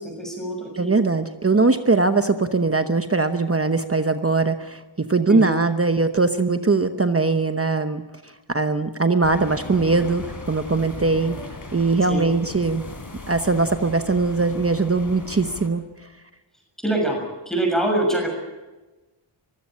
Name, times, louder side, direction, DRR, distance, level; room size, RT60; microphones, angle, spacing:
voice 1, 0.0-0.9 5.3-5.5 12.1-12.2 16.8-17.2 17.5-18.3, right 1 dB, ahead, 1 dB, 6.8 m, -24 dB
voice 2, 0.8-11.4 11.7-12.9 13.3-15.8, right 3 dB, 30° right, 8 dB, 0.9 m, -21 dB
sound 1, 9.2-15.7, left 2 dB, 40° left, 3.7 m, -38 dB
24.0 x 16.0 x 8.7 m, 1.2 s
wide cardioid pair, 95°, 50 cm